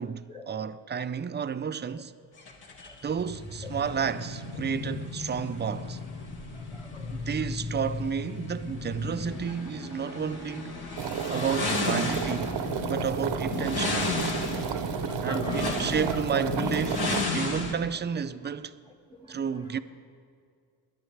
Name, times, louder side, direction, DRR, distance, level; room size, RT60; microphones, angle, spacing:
voice 1, 0.0-2.1 3.0-6.0 7.1-10.8 11.3-12.6 12.9-14.0 15.2-18.7 19.3-19.8, right 7 dB, 25° right, 0.4 m, -31 dB
sound 1, 2.4-17.7, left 3 dB, 60° left, 1.9 m, -34 dB
voice 2, 6.5-7.2 14.7-15.8 19.1-19.8, left 3 dB, 10° left, 1.5 m, -44 dB
Bowed string instrument, 9.3-14.3, left 2 dB, 40° left, 1.8 m, -43 dB
sound 2, 11.0-17.2, right 7 dB, 70° right, 0.8 m, -32 dB
20.5 x 11.0 x 3.3 m
cardioid pair, 90°, 43 cm